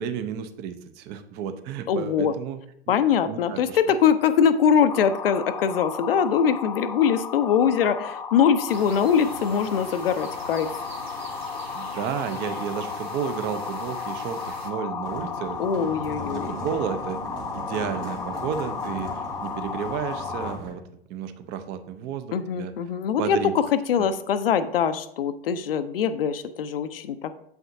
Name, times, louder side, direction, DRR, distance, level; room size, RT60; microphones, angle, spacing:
voice 1, 0.0-2.6 2.9-3.0 3.3-3.8 11.7-15.9 16.2-17.2 17.5-20.8 21.1-22.7 23.2-23.5 24.0-24.1, right 8 dB, 35° right, 10 dB, 0.6 m, -32 dB
voice 2, 1.9-2.3 2.9-10.7 15.6-16.5 22.3-27.4, left 7 dB, 65° left, 11 dB, 0.5 m, -22 dB
sound 1, 4.9-20.6, left 6 dB, 10° left, 0.4 m, -34 dB
sound 2, 8.7-14.7, right 3 dB, 80° right, 1.0 m, -43 dB
sound 3, 15.0-20.7, right 2 dB, 60° right, 2.4 m, -39 dB
7.8 x 5.8 x 2.7 m, 0.75 s
figure-of-eight pair, 90°, 31 cm